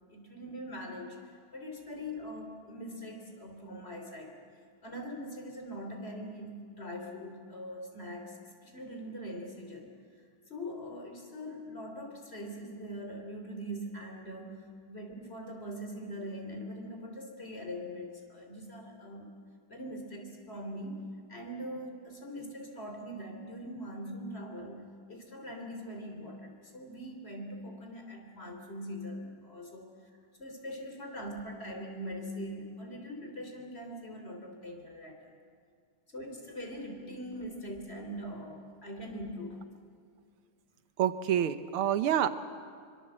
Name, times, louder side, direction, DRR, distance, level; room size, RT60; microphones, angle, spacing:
voice 1, 0.1-4.4 4.8-9.9 10.5-19.4 19.7-21.0 21.3-29.9 30.4-35.3 36.1-39.7, equal, 30° left, 3 dB, 3.7 m, -42 dB
voice 2, 41.0-42.3, right 10 dB, 80° right, 11 dB, 1.9 m, -27 dB
25.5 x 25.0 x 7.8 m, 2.2 s
omnidirectional pair, 2.4 m